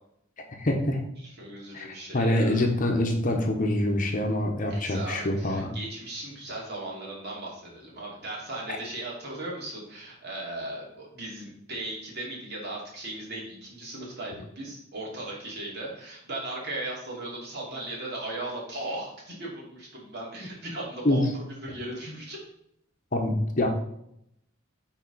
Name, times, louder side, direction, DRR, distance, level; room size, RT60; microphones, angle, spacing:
voice 1, 0.6-1.0 1.7-1.9 2.1-5.7 21.0-21.2 23.1-23.7, left 1 dB, 40° left, 3 dB, 1.0 m, -25 dB
voice 2, 1.2-2.6 4.7-22.4, right 2 dB, 50° right, -3 dB, 2.7 m, -37 dB
9.2 x 4.1 x 4.1 m, 0.75 s
head